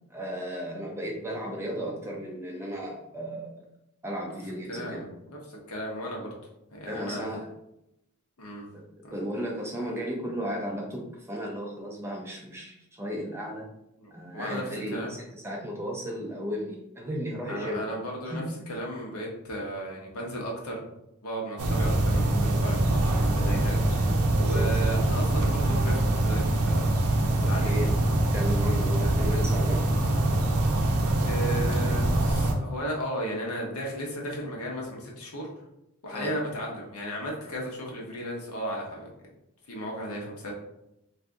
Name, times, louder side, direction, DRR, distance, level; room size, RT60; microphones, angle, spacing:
voice 1, 0.1-3.7 4.0-5.1 6.9-7.5 8.7-8.8 9.1-13.7 14.1-17.8 18.3-18.7 24.4-25.0 27.4-28.0 28.3-29.9 36.1-36.3, equal, 10° right, -1 dB, 0.4 m, -35 dB
voice 2, 4.7-5.4 5.7-6.3 6.7-7.2 8.4-8.6 9.0-9.2 14.0-15.1 17.5-18.4 18.7-20.8 21.2-26.8 27.4-27.9 29.0-29.1 31.2-35.5 36.0-39.1 39.7-40.5, equal, 80° left, -2 dB, 0.9 m, -35 dB
sound 1, 21.6-32.5, right 1 dB, 80° right, 0.5 m, -24 dB
2.6 x 2.5 x 3.5 m, 0.84 s
head